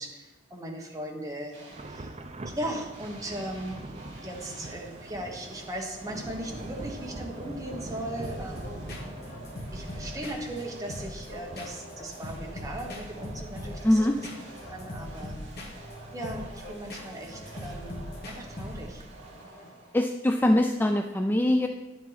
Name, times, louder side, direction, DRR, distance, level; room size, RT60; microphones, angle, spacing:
voice 1, 0.0-2.1 2.4-3.8 4.2-8.9 9.7-14.1 14.7-15.4 16.1-19.0, right 1 dB, 20° right, 0 dB, 1.3 m, -38 dB
sound 1, 1.5-2.2 2.9-20.3, right 1 dB, 65° right, 3.3 m, -48 dB
Thunder / Rain, 1.7-19.4, right 1 dB, 35° right, 0.7 m, -44 dB
sound 2, 8.2-19.1, left 1 dB, 55° left, 1.4 m, -41 dB
voice 2, 13.8-14.2 19.9-21.7, left 1 dB, 10° left, 5 dB, 0.3 m, -23 dB
10.5 x 7.4 x 4.0 m, 1.1 s
head